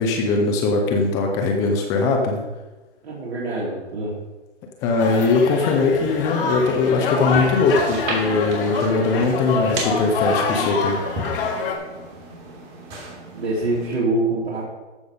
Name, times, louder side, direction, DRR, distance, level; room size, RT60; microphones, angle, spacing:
voice 1, 0.0-2.4 4.8-11.0, left 3 dB, 10° left, 2 dB, 0.4 m, -20 dB
voice 2, 3.0-4.2 13.3-14.6, right 2 dB, 65° right, -5 dB, 3.1 m, -25 dB
sound 1, 5.0-11.7, left 4 dB, 50° left, 2.0 m, -26 dB
sound 2, 6.8-13.9, right 2 dB, 40° right, 3.2 m, -34 dB
14.0 x 5.3 x 5.0 m, 1.2 s
hypercardioid pair, 135°, 35 cm